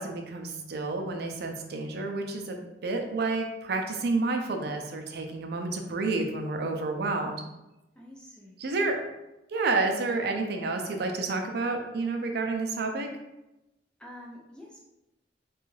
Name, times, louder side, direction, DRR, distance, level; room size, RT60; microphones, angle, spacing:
voice 1, 0.0-7.5 8.6-9.0 9.5-13.1, right 3 dB, 60° right, 4 dB, 0.4 m, -30 dB
voice 2, 8.0-8.6 14.0-14.8, left 1 dB, 5° left, -3 dB, 0.3 m, -47 dB
2.6 x 2.3 x 3.1 m, 0.95 s
head